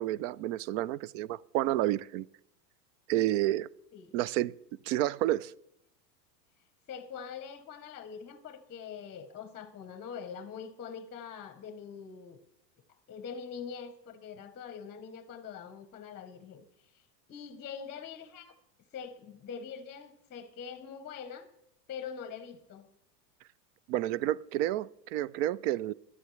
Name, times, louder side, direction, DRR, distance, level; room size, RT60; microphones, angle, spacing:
voice 1, 0.0-2.3 3.1-3.7 4.1-4.5 4.9-5.5 23.9-25.9, right 14 dB, 55° right, 0.5 m, -30 dB
voice 2, 6.9-12.4 13.1-18.6 18.9-21.5 21.9-22.9, left 7 dB, 20° left, 0.8 m, -44 dB
17.0 x 12.0 x 3.1 m
supercardioid pair, 135°, 49 cm